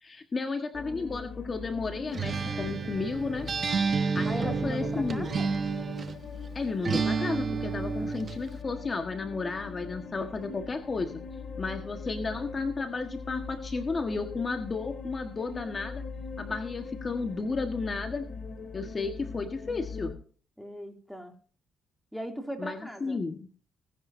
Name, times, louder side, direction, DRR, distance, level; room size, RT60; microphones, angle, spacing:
voice 1, 0.0-3.5 4.1-5.3 6.5-11.1 11.6-16.0 16.4-18.2 18.7-20.1 22.6-23.4, left 4 dB, 35° left, 5 dB, 1.5 m, -33 dB
sound 1, 0.7-20.1, left 4 dB, 55° left, 2.3 m, -41 dB
Acoustic guitar, 2.1-6.2 6.8-8.4, right 5 dB, 40° right, 1.0 m, -30 dB
voice 2, 4.3-5.5 20.6-21.3 22.1-23.2, equal, ahead, 3 dB, 2.8 m, -39 dB
19.5 x 10.5 x 2.7 m, 0.42 s
cardioid pair, 90°, 0 cm